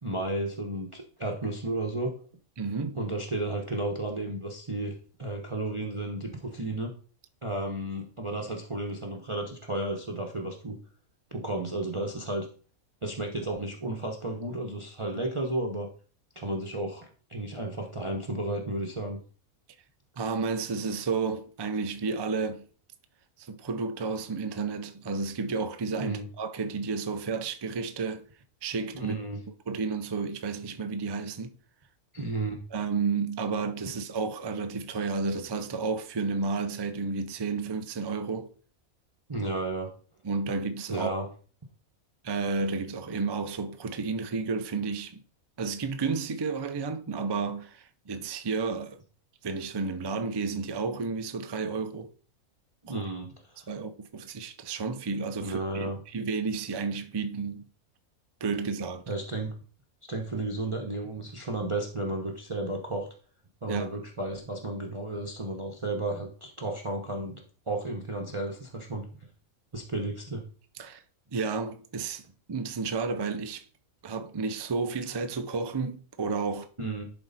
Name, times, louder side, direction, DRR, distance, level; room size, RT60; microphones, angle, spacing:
voice 1, 0.0-2.1 3.0-4.9 5.2-6.9 7.4-10.8 11.3-12.5 13.0-15.9 16.3-19.2 26.0-26.2 28.9-29.4 32.1-32.6 39.3-39.9 40.9-41.3 52.8-53.3 53.6-53.7 55.4-56.0 59.1-59.6 60.1-63.1 63.6-69.0 69.7-70.4 76.8-77.0, right 2 dB, 25° right, 0.9 m, -33 dB
voice 2, 2.6-3.0 20.2-22.6 23.4-28.3 28.6-29.1 29.7-31.5 32.7-38.5 40.2-41.1 42.2-45.2 45.6-49.0 49.4-52.1 52.9-53.0 53.7-57.6 58.4-59.0 63.7-63.9 70.8-71.0 71.3-72.2 72.5-73.6 74.0-76.7, right 4 dB, 45° right, 0.3 m, -31 dB
11.0 x 4.4 x 4.0 m
omnidirectional pair, 1.5 m